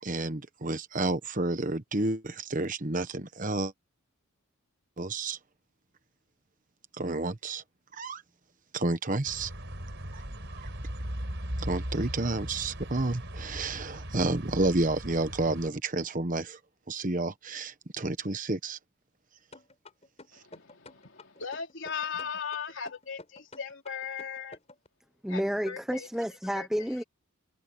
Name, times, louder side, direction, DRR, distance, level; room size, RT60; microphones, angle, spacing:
voice 1, 0.0-3.7 5.0-5.4 7.0-7.6 7.9-8.2 8.7-9.5 10.1-10.7 11.6-16.6 16.9-18.8, right 2 dB, 35° right, 1.2 m, -30 dB
sound 1, 9.2-15.7, right 1 dB, 55° right, 5.2 m, -38 dB
sound 2, 19.5-24.9, left 2 dB, 30° left, 7.0 m, -50 dB
voice 2, 20.3-24.6 25.3-26.1 26.5-26.9, left 6 dB, 55° left, 4.2 m, -38 dB
voice 3, 25.2-27.0, equal, ahead, 0.8 m, -30 dB
head